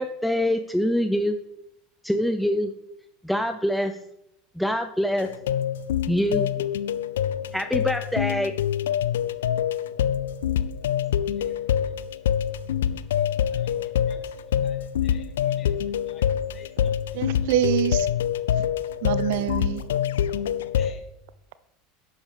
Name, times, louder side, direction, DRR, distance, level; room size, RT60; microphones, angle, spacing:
voice 1, 0.0-1.4 2.0-2.7 3.2-3.9 4.6-5.3 6.1-6.5 7.5-8.5, left 1 dB, ahead, 7 dB, 0.6 m, -24 dB
sound 1, 5.2-20.9, left 9 dB, 75° left, 0.4 m, -25 dB
voice 2, 11.4-11.9 13.1-14.2 14.6-16.2 16.5-17.2 20.5-21.1, left 6 dB, 40° left, 4 dB, 2.2 m, -52 dB
voice 3, 17.1-18.1 18.5-18.6 19.0-19.9, right 11 dB, 65° right, 16 dB, 0.5 m, -25 dB
11.0 x 8.7 x 3.5 m, 0.82 s
hypercardioid pair, 80°, 0 cm